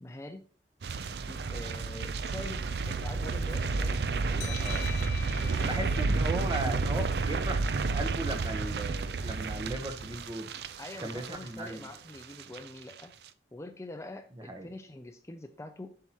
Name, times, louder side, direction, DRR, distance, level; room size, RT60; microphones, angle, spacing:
voice 1, 0.0-0.4 1.3-4.6 5.4-6.1 10.8-13.1 13.5-15.9, left 1 dB, 15° left, 7 dB, 0.4 m, -45 dB
sound 1, 0.8-12.0 12.2-12.6 12.9-13.0, right 4 dB, 65° right, 0.5 m, -31 dB
sound 2, 4.4-7.7, left 10 dB, 85° left, 0.5 m, -45 dB
voice 2, 4.6-4.9 5.6-10.5 11.0-11.9 14.4-14.7, right 1 dB, 25° right, 5 dB, 1.0 m, -37 dB
8.1 x 5.6 x 3.0 m, 0.42 s
head